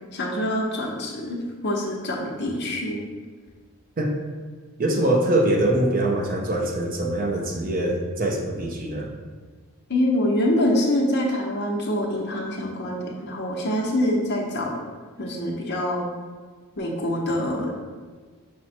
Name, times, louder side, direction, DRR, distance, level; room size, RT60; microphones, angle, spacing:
voice 1, 0.1-3.0 9.9-14.8 15.2-16.1 16.8-17.7, left 1 dB, 50° left, -2 dB, 0.7 m, -25 dB
voice 2, 4.8-9.1, right 1 dB, 40° right, 1 dB, 0.5 m, -23 dB
5.8 x 2.1 x 4.3 m, 1.5 s
head